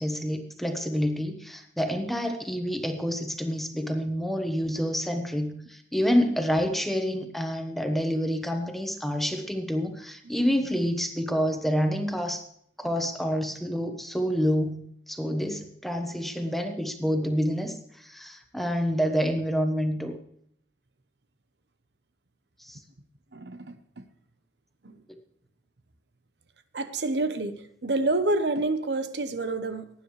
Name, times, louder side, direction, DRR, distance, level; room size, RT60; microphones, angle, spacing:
voice 1, 0.0-12.5 12.8-20.2 22.6-22.8, equal, ahead, 5 dB, 1.2 m, -28 dB
voice 2, 23.3-24.1 24.8-24.9 26.7-29.9, right 2 dB, 80° right, 10 dB, 1.0 m, -28 dB
18.5 x 10.0 x 3.3 m, 0.66 s
head